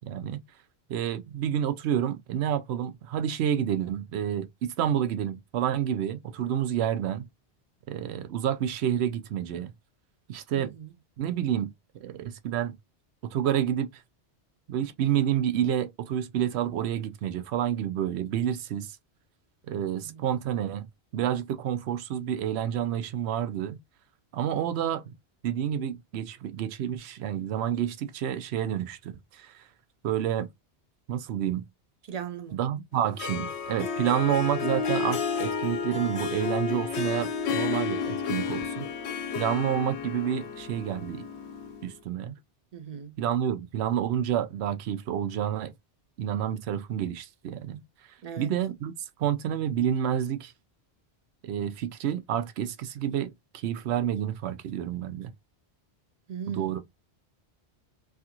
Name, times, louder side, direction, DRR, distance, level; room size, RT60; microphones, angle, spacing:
voice 1, 0.1-0.4 0.9-7.3 7.9-9.7 10.3-10.7 11.2-11.7 12.0-12.7 13.2-14.0 14.7-19.0 19.7-20.9 21.1-23.8 24.3-25.0 25.4-29.6 30.0-30.5 31.1-31.6 32.5-38.9 39.3-41.2 41.8-42.4 43.2-45.7 46.2-47.8 48.4-48.9 49.2-50.5 51.4-55.3 56.5-56.8, right 10 dB, 75° right, 0.8 m, -29 dB
voice 2, 10.6-10.9 20.0-20.3 32.0-32.6 42.7-43.2 48.2-48.5 56.3-56.8, right 7 dB, 50° right, 0.5 m, -39 dB
Harp, 32.9-41.9, left 6 dB, 90° left, 0.9 m, -31 dB
3.3 x 2.4 x 2.8 m
omnidirectional pair, 1.1 m